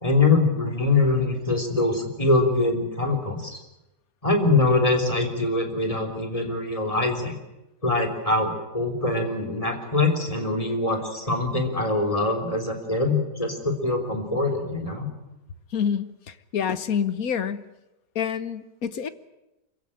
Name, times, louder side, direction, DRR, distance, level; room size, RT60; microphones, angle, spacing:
voice 1, 0.0-3.6 4.2-7.4 7.8-15.1, left 2 dB, 20° left, 3 dB, 3.6 m, -23 dB
voice 2, 15.7-17.7 18.1-19.1, left 7 dB, 60° left, 13 dB, 1.5 m, -27 dB
25.0 x 16.5 x 10.0 m, 0.96 s
omnidirectional pair, 1.8 m